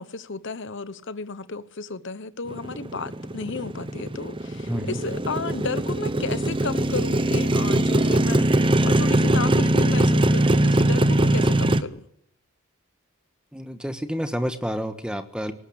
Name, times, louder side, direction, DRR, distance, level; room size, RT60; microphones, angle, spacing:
voice 1, 0.0-12.1, left 4 dB, 60° left, 1.0 m, -33 dB
Motorcycle, 2.5-11.8, right 1 dB, 25° right, 0.8 m, -21 dB
voice 2, 4.7-5.0 13.5-15.5, equal, 5° right, 1.4 m, -29 dB
19.0 x 17.0 x 8.8 m
head